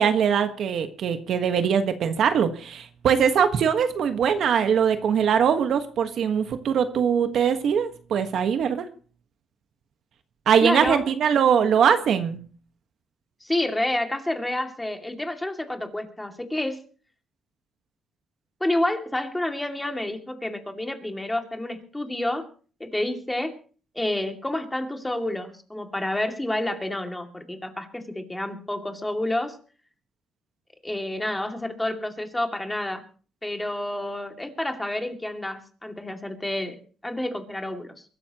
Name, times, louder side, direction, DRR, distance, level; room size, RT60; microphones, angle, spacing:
voice 1, 0.0-8.8 10.5-12.4, right 7 dB, 65° right, 8 dB, 1.4 m, -22 dB
voice 2, 10.6-11.0 13.4-16.8 18.6-22.5 22.8-23.5 23.9-29.6 30.8-33.0 33.4-38.0, left 1 dB, 10° left, 4 dB, 2.4 m, -29 dB
23.5 x 13.0 x 3.0 m, 0.41 s
cardioid pair, 90°, 0 cm